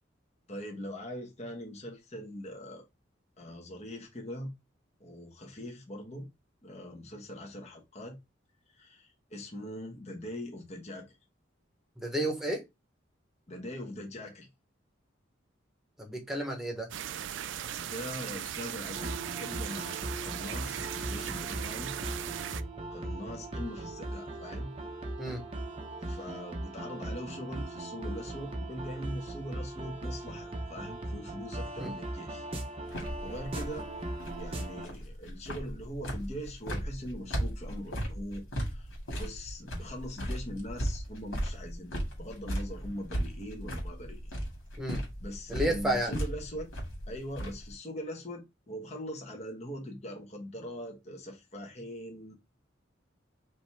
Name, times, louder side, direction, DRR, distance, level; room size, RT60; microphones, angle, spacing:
voice 1, 0.5-2.9 3.4-4.5 5.0-6.3 6.6-8.2 8.7-11.2 13.5-14.5 17.8-21.9 22.9-24.7 26.0-32.4 33.2-33.9 34.4-38.9 39.1-44.3 45.2-46.7 47.1-52.3, equal, 35° left, 1.2 m, -42 dB
voice 2, 12.0-12.6 16.0-16.9 25.2-25.4 31.8-31.9 44.8-45.0 45.5-46.2, right 1 dB, ahead, 1.2 m, -31 dB
sound 1, 16.9-22.6, right 10 dB, 65° right, 0.3 m, -38 dB
sound 2, 18.9-34.9, right 1 dB, 30° right, 0.8 m, -39 dB
sound 3, 32.9-47.7, equal, 80° left, 2.1 m, -37 dB
5.2 x 2.9 x 3.4 m
head